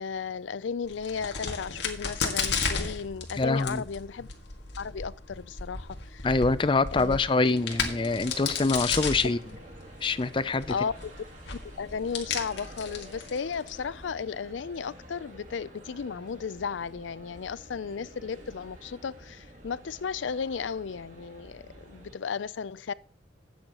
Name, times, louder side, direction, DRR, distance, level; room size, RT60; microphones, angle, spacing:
voice 1, 0.0-4.3 4.8-6.3 6.9-7.2 10.7-10.9 11.8-22.9, left 6 dB, 90° left, 0.5 m, -34 dB
Crack, 0.8-14.1, left 5 dB, 70° left, 2.0 m, -35 dB
voice 2, 3.3-3.8 6.2-9.4 10.0-10.7, left 3 dB, 25° left, 0.4 m, -25 dB
sound 1, 7.5-22.1, equal, 45° right, 2.6 m, -49 dB
13.5 x 9.1 x 3.0 m
head